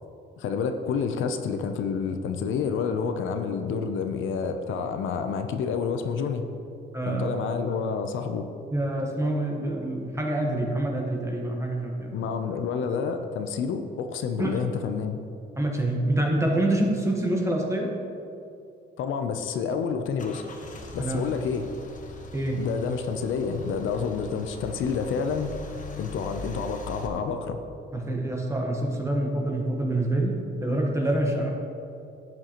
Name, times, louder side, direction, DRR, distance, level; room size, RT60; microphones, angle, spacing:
voice 1, 0.4-6.5 7.1-8.5 12.1-15.2 19.0-20.4 20.9-21.7 22.5-25.6 26.0-27.6, left 6 dB, 80° left, 7 dB, 0.7 m, -29 dB
voice 2, 6.9-7.3 8.7-12.1 14.4-14.5 15.6-17.9 21.0-21.2 22.3-22.6 27.9-30.3 30.6-31.5, right 1 dB, 15° right, 0 dB, 1.2 m, -26 dB
Car / Engine starting / Idling, 20.2-27.1, left 1 dB, 40° left, 1.1 m, -42 dB
11.0 x 7.5 x 3.0 m, 2.7 s
cardioid pair, 90°, 20 cm